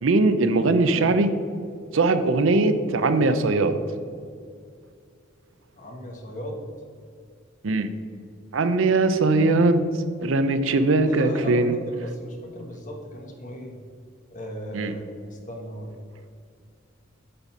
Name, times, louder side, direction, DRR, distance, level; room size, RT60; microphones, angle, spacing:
voice 1, 0.0-1.3 1.9-3.8 7.6-7.9 8.5-9.9 10.2-11.8 14.7-14.9, right 3 dB, 70° right, 10 dB, 0.6 m, -20 dB
voice 2, 5.8-6.6 11.1-13.8 14.3-16.0, equal, 40° left, 2 dB, 1.3 m, -37 dB
8.5 x 4.2 x 6.0 m, 2.2 s
head